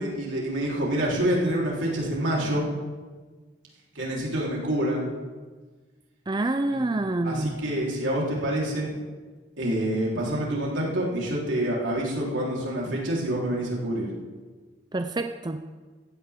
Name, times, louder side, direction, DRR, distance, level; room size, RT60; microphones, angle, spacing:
voice 1, 0.0-2.7 4.0-5.1 7.2-8.9 9.6-14.1, right 1 dB, 80° right, -4 dB, 3.9 m, -27 dB
voice 2, 6.3-7.6 14.9-15.6, right 2 dB, 25° right, 8 dB, 0.5 m, -27 dB
16.0 x 15.0 x 3.7 m, 1.4 s
head